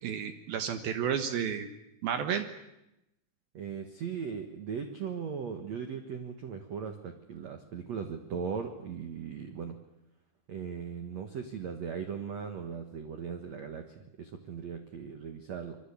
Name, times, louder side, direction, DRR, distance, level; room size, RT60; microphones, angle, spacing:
voice 1, 0.0-1.7 2.0-2.5, right 8 dB, 65° right, 8 dB, 2.6 m, -31 dB
voice 2, 3.5-9.7 10.5-15.8, right 6 dB, 80° right, 6 dB, 1.5 m, -38 dB
25.5 x 22.5 x 8.6 m, 0.88 s
omnidirectional pair, 5.6 m